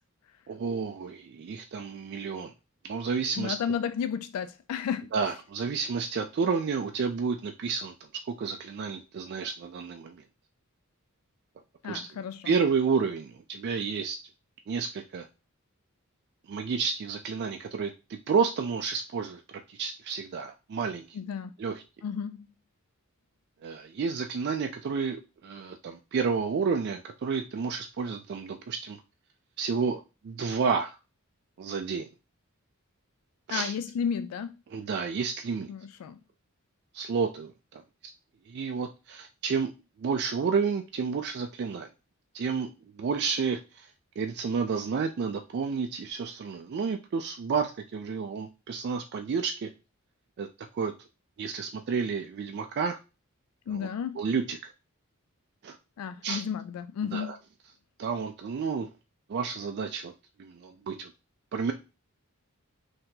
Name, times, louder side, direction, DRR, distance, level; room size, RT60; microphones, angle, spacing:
voice 1, 0.5-2.5 2.8-3.6 5.1-7.9 8.3-10.2 11.9-12.1 12.4-14.2 14.7-15.3 16.5-19.4 19.7-21.2 21.6-21.8 23.6-29.0 29.6-31.0 31.6-32.1 33.5-33.7 34.7-35.7 36.9-37.8 38.5-39.7 40.0-41.9 42.3-43.9 44.2-49.7 50.4-50.5 50.7-50.9 51.4-53.0 53.7-53.9 54.2-54.7 55.6-55.8 56.2-56.4 57.1-57.4 58.0-58.9 59.3-60.1 60.4-61.1 61.5-61.7, right 5 dB, 50° right, 0.3 m, -30 dB
voice 2, 3.4-5.1 11.8-12.5 21.1-21.5 22.0-22.5 33.5-34.6 35.7-36.2 53.7-54.2 56.0-57.3, left 7 dB, 85° left, 0.3 m, -32 dB
4.3 x 2.8 x 3.8 m
head